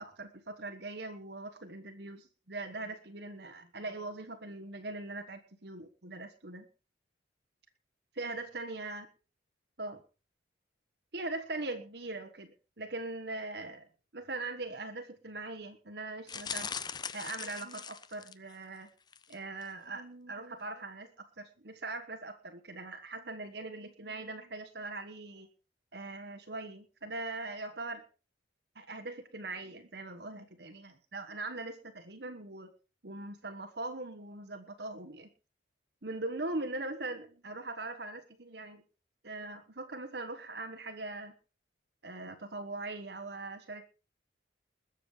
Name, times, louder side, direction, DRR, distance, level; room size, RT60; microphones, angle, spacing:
voice 1, 0.0-6.7 8.1-9.1 9.8-10.0 11.1-16.7 17.1-18.9 19.3-25.5 25.9-28.0 28.7-32.7 33.0-35.3 36.0-38.8 39.2-41.3 42.0-43.8, right 2 dB, 60° right, 6 dB, 1.3 m, -41 dB
sound 1, 16.3-18.6 19.1-19.4 19.6-19.7, left 6 dB, 20° left, 0.6 m, -40 dB
21.0 x 7.4 x 4.9 m, 0.34 s
head